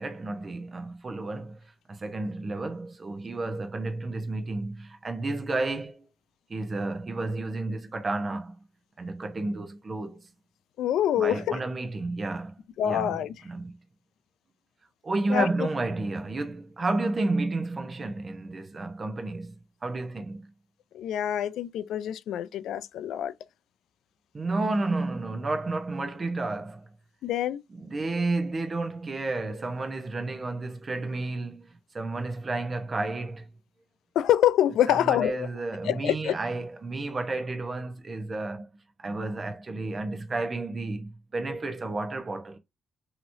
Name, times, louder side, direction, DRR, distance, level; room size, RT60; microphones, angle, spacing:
voice 1, 0.0-1.6 1.9-6.1 6.5-8.6 9.0-10.2 11.2-12.5 12.8-13.1 13.4-13.7 15.0-19.6 19.8-20.5 24.3-26.9 27.7-33.5 34.9-38.7 39.0-42.6, right 2 dB, 35° right, 0.8 m, -31 dB
voice 2, 10.8-11.6 12.8-13.3 15.3-15.5 20.9-23.3 27.2-27.6 34.2-35.5 35.8-36.4, left 11 dB, 80° left, 0.3 m, -25 dB
3.0 x 2.9 x 2.6 m
cardioid pair, 90°, 0 cm